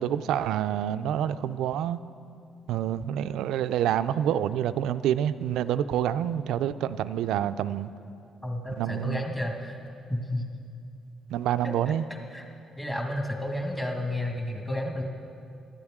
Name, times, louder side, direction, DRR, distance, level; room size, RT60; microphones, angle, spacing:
voice 1, 0.0-2.0 2.7-7.9 8.8-9.2 11.3-12.0, right 10 dB, 85° right, 13 dB, 0.4 m, -27 dB
voice 2, 8.4-9.8 10.1-10.5 11.6-11.9 12.3-12.4 12.8-15.0, left 1 dB, 20° left, 1 dB, 1.7 m, -31 dB
19.5 x 12.5 x 3.6 m, 2.6 s
cardioid pair, 90°, 0 cm